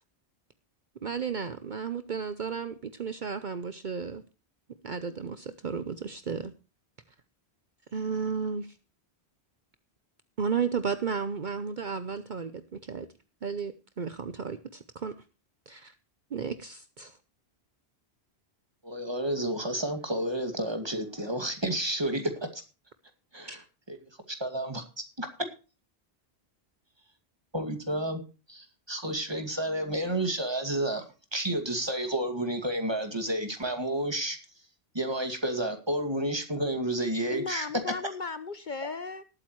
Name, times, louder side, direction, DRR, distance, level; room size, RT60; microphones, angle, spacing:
voice 1, 1.0-4.2 4.8-6.5 7.9-8.8 10.4-13.1 13.4-15.2 15.7-15.9 16.3-17.2 23.5-23.6, right 6 dB, 50° right, 0.9 m, -33 dB
voice 2, 18.8-22.6 23.3-23.6 23.9-24.0 24.3-25.3 27.5-28.2 28.5-31.0 31.3-34.4 34.9-37.7, right 1 dB, 25° right, 2.2 m, -31 dB
voice 3, 37.3-39.2, left 4 dB, 50° left, 0.9 m, -36 dB
19.5 x 8.7 x 3.1 m
omnidirectional pair, 1.1 m